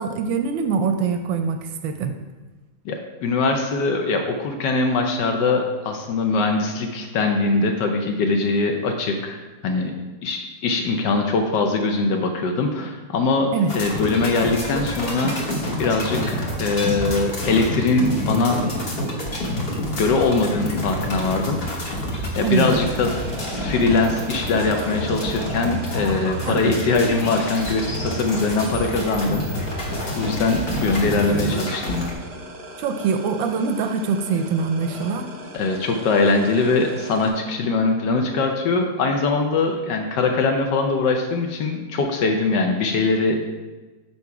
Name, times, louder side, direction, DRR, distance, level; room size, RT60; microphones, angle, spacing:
voice 1, 0.0-2.1 13.5-13.7 22.4-22.8 26.5-26.7 32.8-35.3, right 5 dB, 75° right, 7 dB, 1.2 m, -23 dB
voice 2, 2.8-9.9 10.2-15.3 15.8-18.6 20.0-21.9 22.4-23.2 23.5-29.4 29.8-32.1 35.5-43.4, left 3 dB, 70° left, 4 dB, 1.1 m, -22 dB
sound 1, 13.7-32.1, equal, 35° left, 1.1 m, -28 dB
sound 2, 22.4-37.3, right 1 dB, 40° right, 0.9 m, -39 dB
6.8 x 4.5 x 4.7 m, 1.2 s
omnidirectional pair, 2.2 m